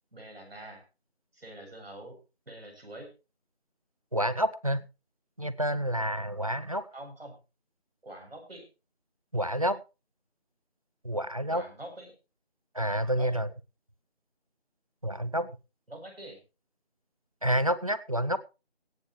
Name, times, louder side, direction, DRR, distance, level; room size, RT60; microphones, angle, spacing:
voice 1, 0.1-0.8 1.3-2.2 2.5-3.1 6.9-7.4 8.0-8.7 9.6-9.7 11.5-12.1 13.1-13.3 15.9-16.4, right 1 dB, 65° right, 2 dB, 7.9 m, -45 dB
voice 2, 4.1-4.8 5.4-6.8 9.3-9.8 11.0-11.6 12.7-13.5 15.0-15.5 17.4-18.4, equal, 35° right, 16 dB, 0.6 m, -28 dB
17.0 x 12.5 x 3.2 m, 0.29 s
figure-of-eight pair, 170°, 32 cm